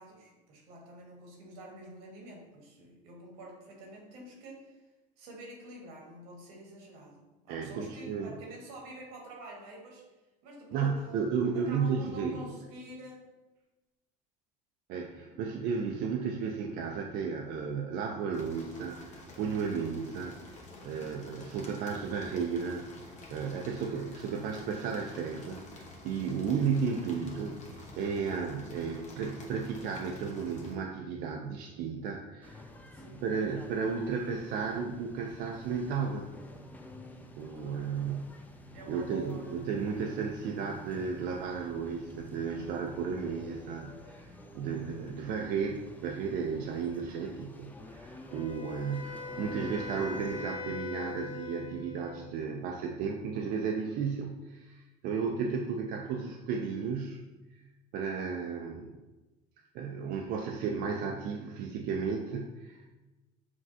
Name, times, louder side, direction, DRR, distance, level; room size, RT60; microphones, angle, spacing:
voice 1, 0.0-4.8 5.2-10.1 10.4-11.3 11.5-13.3 15.1-15.4 26.1-26.5 32.9-33.2 37.5-38.2 38.7-39.5 46.9-47.0 55.3-55.5, right 1 dB, 85° right, -1 dB, 1.2 m, -48 dB
voice 2, 7.5-8.3 10.7-12.4 14.9-32.6 33.2-36.4 37.4-38.4 38.9-57.2 57.9-59.0 59.7-62.9, right 5 dB, 65° right, 2 dB, 0.4 m, -34 dB
sound 1, 18.3-30.8, left 2 dB, 40° left, 0.9 m, -49 dB
sound 2, 32.4-50.5, left 1 dB, 10° left, 0.4 m, -50 dB
Wind instrument woodwind instrument, 48.3-52.3, left 4 dB, 80° left, 0.9 m, -42 dB
5.9 x 2.3 x 2.7 m, 1.1 s
supercardioid pair, 95°, 18 cm